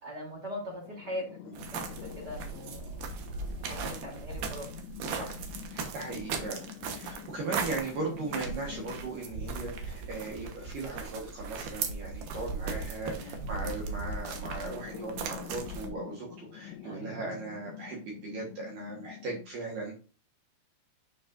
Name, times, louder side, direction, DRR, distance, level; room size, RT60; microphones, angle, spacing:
voice 1, 0.0-3.0 3.6-4.7 8.0-8.2 13.0-13.5 16.8-17.4, equal, 25° right, -2 dB, 2.8 m, -41 dB
sound 1, 0.6-19.5, left 12 dB, 85° left, 2.9 m, -47 dB
sound 2, 1.5-15.9, right 5 dB, 85° right, 1.9 m, -38 dB
voice 2, 5.1-5.4 5.7-20.0, right 3 dB, 65° right, -1 dB, 2.2 m, -38 dB
9.6 x 5.5 x 2.5 m, 0.37 s
omnidirectional pair, 5.5 m